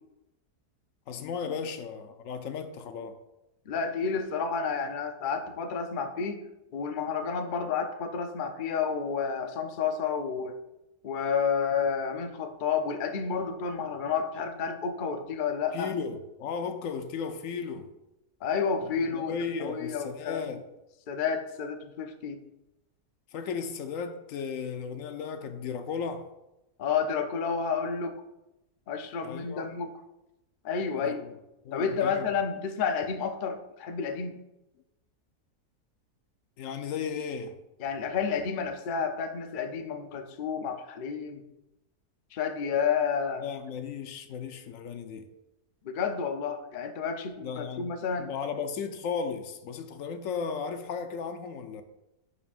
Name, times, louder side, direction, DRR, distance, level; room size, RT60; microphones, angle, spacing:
voice 1, 1.1-3.2 15.7-17.9 19.1-20.6 23.3-26.3 29.2-29.7 30.9-31.3 31.6-32.2 36.6-37.5 43.4-45.3 47.4-47.9 48.2-51.8, left 6 dB, 65° left, 0.9 m, -35 dB
voice 2, 3.7-6.4 6.7-10.6 11.0-15.9 18.4-19.3 19.6-20.6 21.1-22.4 26.8-28.2 28.9-30.0 30.6-31.2 31.7-34.4 37.8-41.4 42.3-43.5 45.8-48.3, left 6 dB, 90° left, 0.4 m, -30 dB
11.0 x 5.0 x 2.4 m
omnidirectional pair, 1.7 m